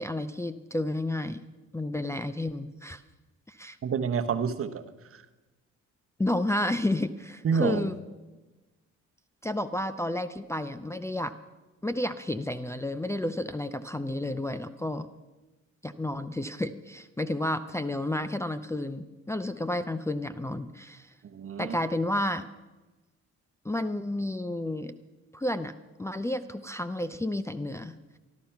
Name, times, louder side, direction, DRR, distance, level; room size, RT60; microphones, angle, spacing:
voice 1, 0.0-1.4 1.7-3.0 3.5-3.8 6.2-7.9 9.4-11.3 11.8-15.1 15.8-21.1 21.6-22.5 23.6-24.9 25.3-25.7 26.0-28.0, left 1 dB, 10° left, 8 dB, 0.5 m, -31 dB
voice 2, 3.8-5.3 7.4-7.8 21.2-21.8, right 6 dB, 45° right, 9 dB, 1.0 m, -29 dB
13.0 x 12.5 x 5.8 m, 1.2 s
cardioid pair, 90°, 30 cm